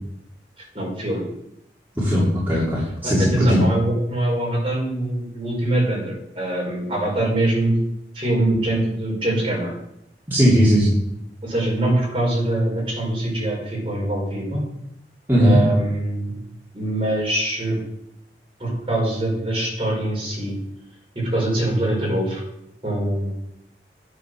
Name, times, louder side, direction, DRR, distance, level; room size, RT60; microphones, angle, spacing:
voice 1, 0.6-1.2 3.0-7.8 8.1-9.7 11.4-14.6 15.4-16.3 16.7-17.8 18.6-20.5 21.1-22.4 22.8-23.3, right 1 dB, 30° right, -3 dB, 5.0 m, -23 dB
voice 2, 2.0-3.6 10.3-10.9 15.3-15.6, equal, 10° right, -8 dB, 3.0 m, -17 dB
9.7 x 8.5 x 6.3 m, 0.80 s
head